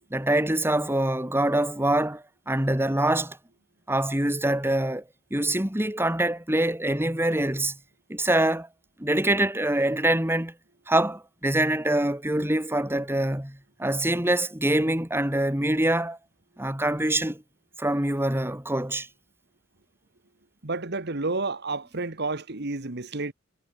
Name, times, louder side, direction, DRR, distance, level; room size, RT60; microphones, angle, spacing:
voice 1, 0.1-3.4 3.9-5.0 5.3-7.7 8.1-8.7 9.0-10.5 10.9-16.2 16.6-17.4 17.8-19.1, right 1 dB, 10° right, 3.1 m, -25 dB
voice 2, 20.6-23.3, right 3 dB, 55° right, 1.8 m, -30 dB
head